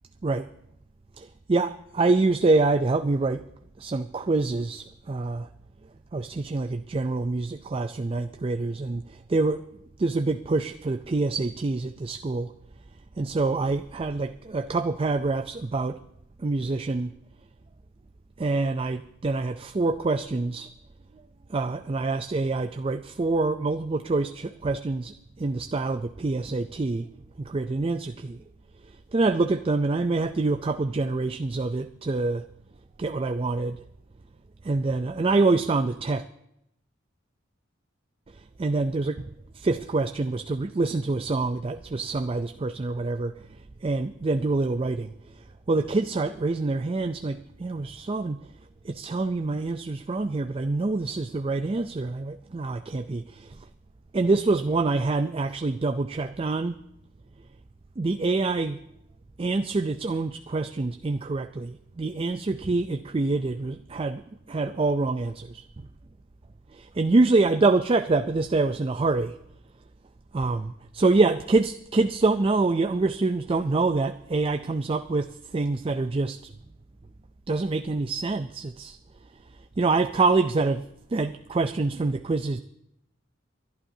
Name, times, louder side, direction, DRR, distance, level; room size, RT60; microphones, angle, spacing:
voice 1, 1.5-3.4 3.8-5.5 6.1-9.6 10.0-12.5 13.2-16.0 16.4-17.1 18.4-20.7 21.5-27.1 27.4-28.4 29.1-32.4 33.0-33.8 34.6-36.2 38.3-48.5 48.8-53.7 54.1-56.8 58.0-58.8 59.4-65.6 66.7-69.4 70.3-76.5 77.5-79.0 79.8-80.9 81.1-82.6, right 3 dB, 30° right, 9 dB, 0.4 m, -26 dB
28.5 x 11.5 x 2.7 m, 0.81 s
head